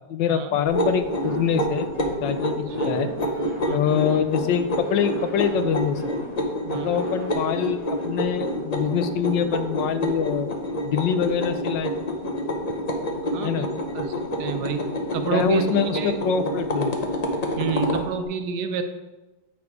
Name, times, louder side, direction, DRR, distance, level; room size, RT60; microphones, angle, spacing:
voice 1, 0.1-1.8 2.2-3.1 3.7-6.0 6.8-10.5 10.8-12.0 13.4-13.7 14.4-14.6 15.3-17.0, left 7 dB, 80° left, 9 dB, 1.3 m, -25 dB
sound 1, 0.6-18.1, equal, 50° left, 0.4 m, -28 dB
sound 2, 1.2-8.7, right 5 dB, ahead, 1.1 m, -38 dB
voice 2, 2.4-3.0 3.6-4.0 6.6-7.0 13.3-14.8 15.1-16.2 17.6-18.8, right 6 dB, 75° right, 8 dB, 1.1 m, -30 dB
8.7 x 4.2 x 4.7 m, 1.1 s
omnidirectional pair, 1.9 m